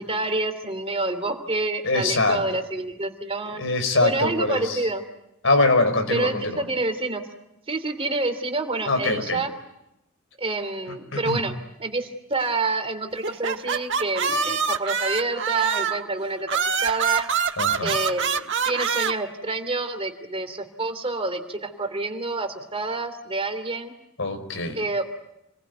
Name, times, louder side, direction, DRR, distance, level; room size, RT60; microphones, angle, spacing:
voice 1, 0.0-3.6 4.0-5.0 6.1-7.2 7.7-9.5 10.4-17.3 17.8-23.9 24.7-25.0, right 2 dB, 25° right, 7 dB, 3.0 m, -28 dB
voice 2, 1.8-2.4 3.5-4.8 5.4-6.6 8.8-9.4 11.1-11.4 17.6-17.9 24.2-24.8, left 2 dB, 65° left, 7 dB, 4.8 m, -23 dB
sound 1, 13.2-16.1 16.5-19.1, right 6 dB, 60° right, 1.5 m, -25 dB
29.5 x 21.5 x 9.4 m, 0.87 s
head